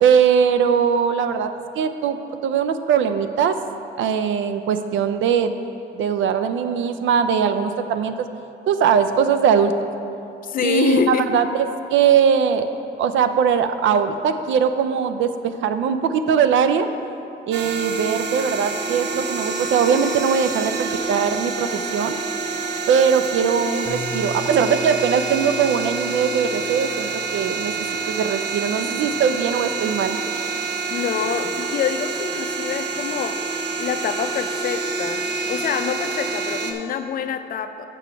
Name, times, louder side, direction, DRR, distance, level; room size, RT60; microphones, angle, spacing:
voice 1, 0.0-1.5 1.8-3.6 4.0-5.5 5.9-8.3 8.7-9.7 10.6-12.7 13.0-16.9 17.5-22.2 22.9-27.7 28.1-30.2, right 7 dB, 75° right, 9 dB, 0.5 m, -20 dB
voice 2, 10.4-11.4 30.9-33.4 33.8-37.8, left 7 dB, 45° left, 8 dB, 0.5 m, -26 dB
sound 1, 17.5-36.7, right 4 dB, 55° right, 0.9 m, -27 dB
Bass guitar, 23.8-28.4 29.1-30.1, left 3 dB, ahead, 0.9 m, -40 dB
6.9 x 6.1 x 5.7 m, 2.8 s
cardioid pair, 90°, 20 cm